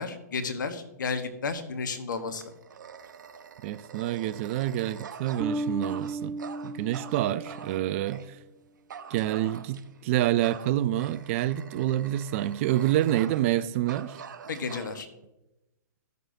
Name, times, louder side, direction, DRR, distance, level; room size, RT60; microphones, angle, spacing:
voice 1, 0.0-2.4 14.5-15.1, left 4 dB, 80° left, 1.1 m, -32 dB
Dog, 2.1-8.3 8.9-10.0 10.4-13.6 13.9-15.0, right 7 dB, 80° right, 0.7 m, -45 dB
voice 2, 3.6-6.3 6.6-8.4 9.1-14.2, right 13 dB, 45° right, 0.4 m, -27 dB
Bass guitar, 5.4-8.0, right 2 dB, 5° right, 0.8 m, -34 dB
14.0 x 6.7 x 2.7 m
hypercardioid pair, 130°, 10 cm